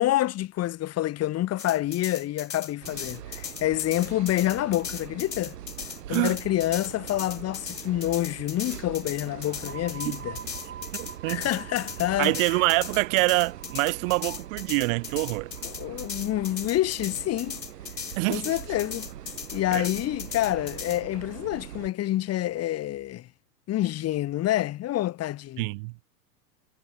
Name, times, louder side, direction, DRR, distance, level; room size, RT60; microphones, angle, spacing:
voice 1, 0.0-5.6 6.1-10.4 11.3-12.3 15.8-17.6 18.3-19.1 19.5-23.3 23.7-25.7, left 14 dB, 30° left, 1.9 m, -27 dB
sound 1, 1.6-21.0, left 7 dB, 85° left, 4.1 m, -38 dB
sound 2, 2.8-21.9, right 11 dB, 70° right, 4.5 m, -42 dB
sound 3, 9.4-16.8, right 8 dB, 25° right, 7.0 m, -46 dB
voice 2, 10.9-11.5 12.2-15.5 18.2-18.6 19.7-19.9 25.6-26.0, right 27 dB, 50° right, 2.9 m, -26 dB
hypercardioid pair, 100°, 50 cm